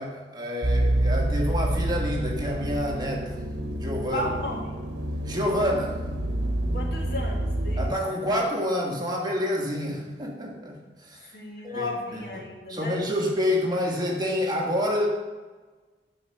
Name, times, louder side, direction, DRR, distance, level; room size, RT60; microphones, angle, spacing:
voice 1, 0.0-3.4 3.8-4.2 5.2-6.0 7.8-11.3 11.6-15.1, left 1 dB, 25° right, -1 dB, 1.7 m, -28 dB
sound 1, 0.6-7.9, right 1 dB, 65° right, 1.1 m, -28 dB
voice 2, 4.1-4.7 6.7-7.9 11.2-13.0, left 1 dB, 65° left, -1 dB, 2.2 m, -34 dB
9.9 x 5.8 x 6.6 m, 1.3 s
head